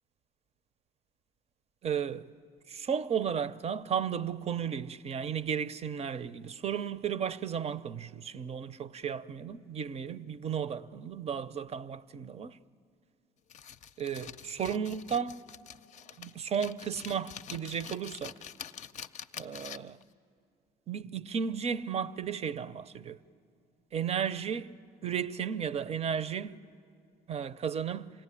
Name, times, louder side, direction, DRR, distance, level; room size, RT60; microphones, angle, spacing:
voice 1, 1.8-2.3 2.7-12.6 14.0-15.4 16.2-18.4 19.4-20.0 20.9-23.2 23.9-24.7 25.0-26.6 27.3-28.1, right 7 dB, 40° right, 0.6 m, -34 dB
sound 1, 13.5-20.0, left 8 dB, 45° left, 0.6 m, -46 dB
27.0 x 17.5 x 9.9 m
cardioid pair, 110°, 17 cm